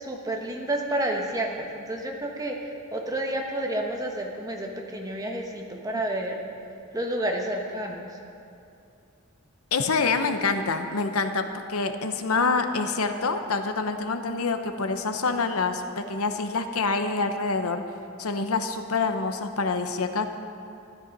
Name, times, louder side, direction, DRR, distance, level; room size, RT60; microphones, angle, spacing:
voice 1, 0.0-6.3 6.9-8.1, right 1 dB, 15° right, 1 dB, 1.2 m, -30 dB
voice 2, 9.7-17.8 18.2-20.3, left 4 dB, 80° left, 7 dB, 0.8 m, -26 dB
13.0 x 11.5 x 5.3 m, 2.6 s
head